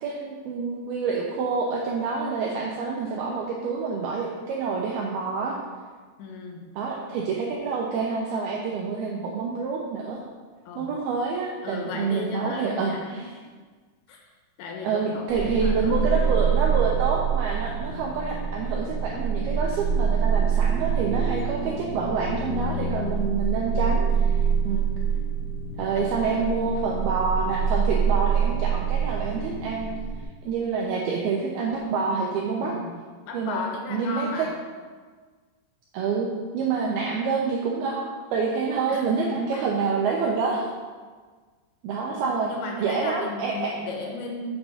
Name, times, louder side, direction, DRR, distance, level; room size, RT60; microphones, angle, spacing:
voice 1, 0.0-5.6 6.8-10.2 10.8-13.3 14.8-24.9 25.8-29.9 30.4-32.7 33.3-33.6 33.9-34.3 35.9-36.3 36.5-40.7 41.8-42.5 42.8-43.7, right 5 dB, 85° right, -2 dB, 2.2 m, -27 dB
voice 2, 6.2-6.7 7.0-7.1 10.7-10.9 11.6-13.2 14.1-14.3 14.6-16.0 22.8-23.2 25.8-26.6 32.6-32.9 33.3-34.6 38.9-39.7 42.1-44.5, left 4 dB, 80° left, 1 dB, 3.3 m, -36 dB
sound 1, 15.3-30.2, right 6 dB, 25° left, 1.2 m, -25 dB
7.1 x 6.2 x 6.4 m, 1.5 s
omnidirectional pair, 5.4 m